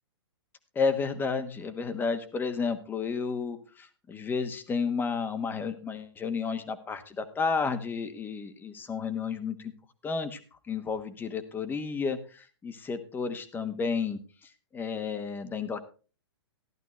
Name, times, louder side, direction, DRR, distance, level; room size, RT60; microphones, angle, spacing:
voice 1, 0.7-9.7 10.0-10.4 10.7-15.8, left 5 dB, 15° left, 9 dB, 1.3 m, -32 dB
15.0 x 11.0 x 3.2 m, 0.36 s
hypercardioid pair, 135°, 14 cm